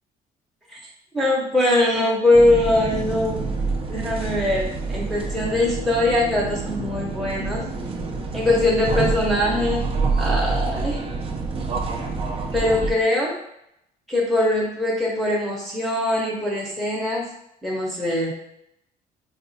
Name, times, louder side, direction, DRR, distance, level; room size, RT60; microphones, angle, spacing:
voice 1, 1.1-3.4 3.9-7.6 8.3-9.8 10.2-11.0 12.5-13.3 14.1-17.3 17.6-18.3, left 1 dB, ahead, -4 dB, 0.8 m, -21 dB
sound 1, 2.3-12.9, right 4 dB, 35° right, 0.5 m, -27 dB
4.0 x 2.3 x 2.6 m, 0.78 s
cardioid pair, 110°, 17 cm